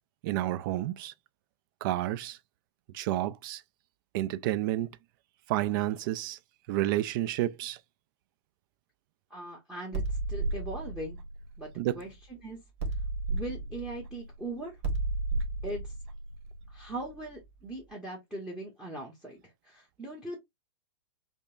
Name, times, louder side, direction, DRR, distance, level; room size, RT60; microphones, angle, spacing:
voice 1, 0.2-1.1 1.8-2.4 2.9-3.6 4.1-4.9 5.5-6.4 6.7-7.8 11.8-12.0, right 14 dB, 45° right, 0.4 m, -30 dB
voice 2, 9.3-11.2 11.6-12.6 13.3-14.8 15.6-15.8 16.7-19.4 19.7-20.4, right 1 dB, 5° right, 0.8 m, -40 dB
sound 1, 9.9-12.3 12.8-17.5, right 2 dB, 65° right, 1.3 m, -33 dB
5.2 x 2.0 x 2.4 m
hypercardioid pair, 140°, 15 cm